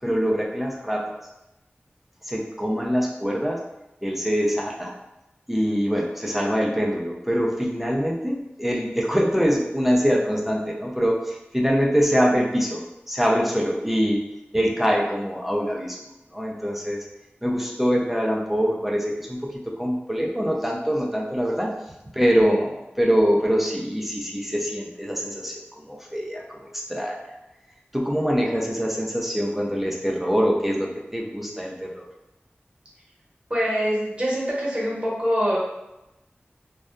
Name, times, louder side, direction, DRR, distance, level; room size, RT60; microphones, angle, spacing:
voice 1, 0.0-1.2 2.2-3.6 4.0-4.9 5.5-14.3 14.5-16.0 16.3-17.1 17.4-21.7 22.1-27.4 27.9-32.1, equal, 5° right, -1 dB, 0.4 m, -24 dB
voice 2, 33.5-35.6, equal, 25° right, -6 dB, 1.0 m, -24 dB
2.6 x 2.2 x 2.3 m, 0.94 s
wide cardioid pair, 50°, 4 cm